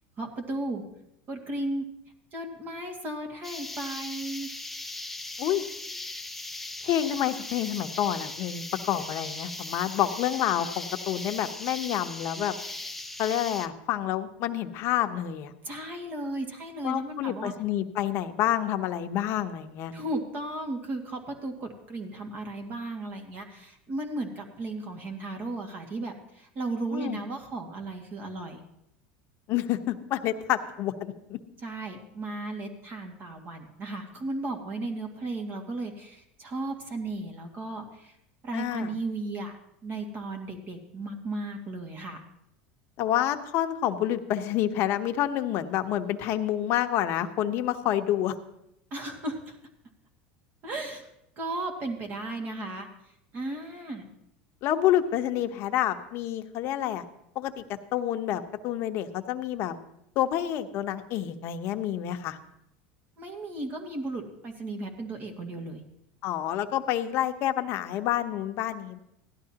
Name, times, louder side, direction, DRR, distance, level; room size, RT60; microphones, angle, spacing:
voice 1, 0.2-0.8 1.3-1.8 2.3-4.5 15.6-17.5 19.9-28.6 31.6-38.2 38.4-39.6 39.8-42.2 48.9-49.6 50.6-51.1 51.4-52.9 53.3-54.0 63.2-65.8, right 2 dB, 40° right, 3 dB, 2.1 m, -35 dB
sound 1, 3.4-13.7, left 2 dB, 5° left, 0.6 m, -38 dB
voice 2, 6.8-12.5 13.2-15.5 16.8-19.9 26.9-27.2 29.5-31.4 38.5-38.9 43.0-48.3 54.6-57.0 57.3-57.6 57.9-59.8 60.2-62.4 66.2-69.0, left 11 dB, 55° left, 7 dB, 0.9 m, -28 dB
16.5 x 12.0 x 2.9 m, 0.80 s
supercardioid pair, 120°, 5 cm